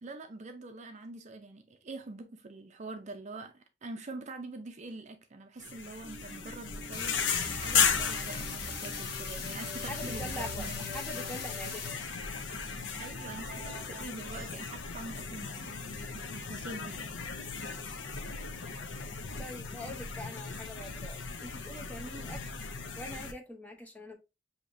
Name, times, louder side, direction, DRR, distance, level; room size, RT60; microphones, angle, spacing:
voice 1, 0.0-10.9 13.0-17.0, right 2 dB, 40° right, 0.5 m, -45 dB
sound 1, 5.6-23.3, left 6 dB, 85° left, 0.7 m, -36 dB
sound 2, 6.0-14.5, equal, 15° right, 2.5 m, -46 dB
sound 3, 6.9-11.9, left 6 dB, 55° left, 1.0 m, -41 dB
voice 2, 9.9-11.9 19.4-22.6 23.0-24.2, equal, 10° left, 0.8 m, -44 dB
6.2 x 2.8 x 2.6 m
head